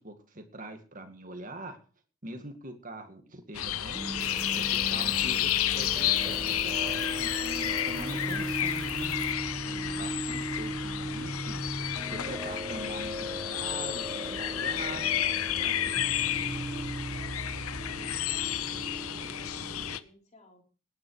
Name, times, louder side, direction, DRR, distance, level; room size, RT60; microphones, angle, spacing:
voice 1, 0.0-1.8 2.2-4.1 4.5-9.2 9.6-11.6 12.1-15.1 15.6-16.0, right 1 dB, 35° right, 6 dB, 2.2 m, -43 dB
sound 1, 3.5-20.0, left 11 dB, 75° left, 0.8 m, -31 dB
sound 2, 3.9-20.0, right 1 dB, 10° right, 1.3 m, -38 dB
sound 3, 4.2-9.3, right 13 dB, 60° right, 0.6 m, -48 dB
voice 2, 17.2-20.6, left 1 dB, 30° left, 1 dB, 3.7 m, -57 dB
18.5 x 10.0 x 4.9 m, 0.39 s
head